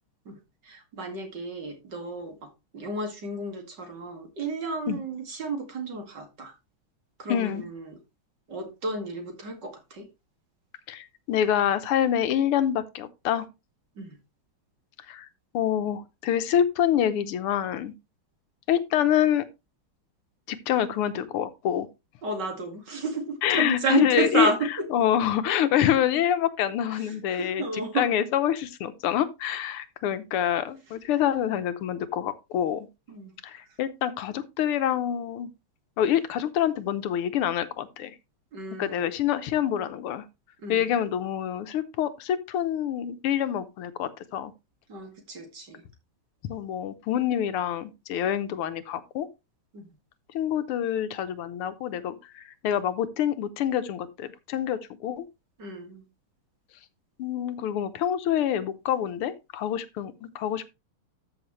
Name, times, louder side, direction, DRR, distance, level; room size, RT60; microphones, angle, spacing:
voice 1, 0.7-6.5 7.2-8.0 8.5-10.1 14.0-14.2 22.2-24.6 27.3-28.1 33.1-33.3 38.5-39.1 40.6-40.9 44.9-45.8 49.7-49.9 55.6-56.0, right 3 dB, 50° right, 2.8 m, -32 dB
voice 2, 7.3-7.7 10.9-13.5 15.1-15.3 15.5-17.9 18.7-19.5 20.5-21.9 23.4-24.5 24.9-32.9 33.4-35.5 36.0-38.2 38.8-40.3 40.7-44.5 46.4-49.3 50.3-55.3 57.2-60.7, left 10 dB, 85° left, 1.8 m, -26 dB
13.0 x 6.2 x 3.1 m
omnidirectional pair, 2.4 m